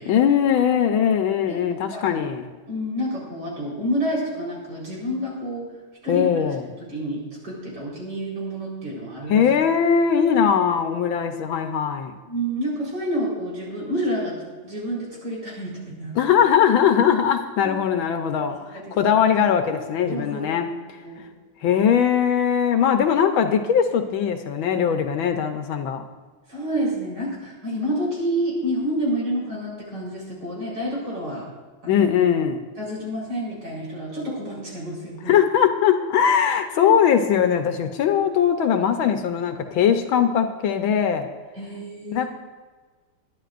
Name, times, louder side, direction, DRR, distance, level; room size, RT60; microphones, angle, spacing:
voice 1, 0.0-2.5 6.1-6.6 9.3-12.1 16.1-20.7 21.6-26.0 31.9-32.6 35.3-41.3 42.1-42.2, left 8 dB, 75° left, 6 dB, 1.5 m, -20 dB
voice 2, 1.9-2.2 2.7-5.7 6.0-9.4 12.3-16.2 17.6-17.8 18.5-19.1 19.6-19.7 20.1-20.5 21.0-21.2 22.8-22.9 26.5-31.5 31.8-32.1 32.8-35.3 36.8-37.0 41.6-42.3, equal, 50° right, -4 dB, 4.9 m, -29 dB
21.0 x 11.0 x 2.5 m, 1.4 s
omnidirectional pair, 2.3 m